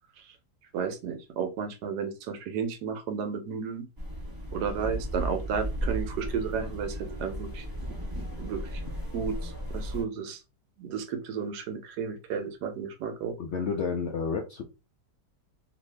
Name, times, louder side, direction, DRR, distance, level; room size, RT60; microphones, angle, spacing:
voice 1, 0.7-3.9 4.5-7.7 8.2-8.8 9.1-10.4 10.8-13.4, right 6 dB, 75° right, 7 dB, 1.1 m, -33 dB
sound 1, 4.0-10.0, equal, 30° right, 0.3 m, -35 dB
voice 2, 13.4-14.6, left 5 dB, 85° left, 2 dB, 0.6 m, -30 dB
2.7 x 2.6 x 3.1 m, 0.28 s
omnidirectional pair, 1.8 m